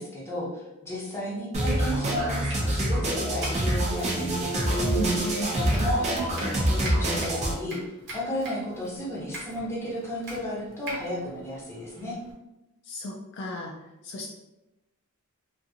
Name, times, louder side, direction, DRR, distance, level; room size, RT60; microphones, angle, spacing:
voice 1, 0.0-4.8 5.5-7.8 8.1-12.2, equal, 10° left, -5 dB, 0.7 m, -33 dB
sound 1, 1.5-7.5, right 1 dB, 30° right, 0.5 m, -26 dB
Domestic sounds home sounds, 1.7-12.3, right 1 dB, 55° right, 0.9 m, -44 dB
voice 2, 4.8-5.6 12.9-13.7 14.0-14.3, equal, 50° left, 0 dB, 0.3 m, -33 dB
2.5 x 2.5 x 2.6 m, 0.96 s
head